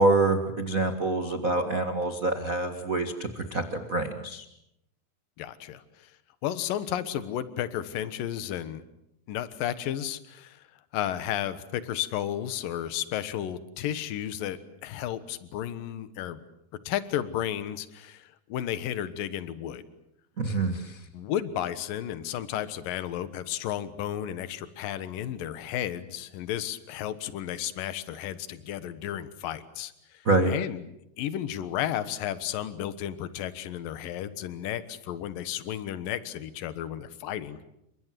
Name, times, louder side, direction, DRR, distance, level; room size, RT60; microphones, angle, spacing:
voice 1, 0.0-4.4 20.4-21.0 30.2-30.5, right 2 dB, 85° right, 5 dB, 0.7 m, -26 dB
voice 2, 5.4-6.1 6.4-8.8 9.3-10.7 10.9-16.4 16.9-19.8 21.1-30.8 31.2-37.7, left 11 dB, 65° left, 13 dB, 2.8 m, -33 dB
29.0 x 24.5 x 7.7 m, 0.80 s
omnidirectional pair, 4.7 m